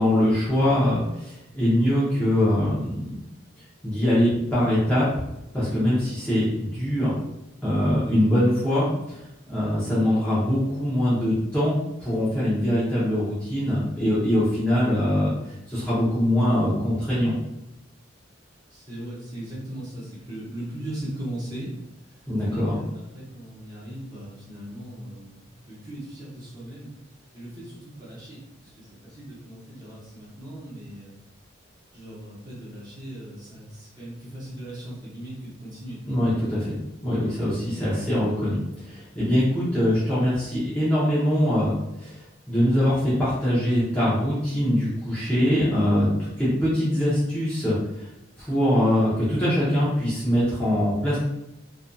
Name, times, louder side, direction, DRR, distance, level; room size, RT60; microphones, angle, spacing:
voice 1, 0.0-3.1 3.8-5.1 5.5-7.1 7.6-15.3 15.7-17.3 22.3-22.8 36.1-36.8 37.0-42.2 42.5-48.1 48.4-51.2, left 1 dB, 5° left, -11 dB, 0.6 m, -23 dB
voice 2, 18.7-21.7 22.1-25.4 25.6-26.9 27.3-28.4 28.7-31.1 31.9-36.0, right 1 dB, 20° right, -8 dB, 0.9 m, -38 dB
2.6 x 2.4 x 2.2 m, 0.90 s
head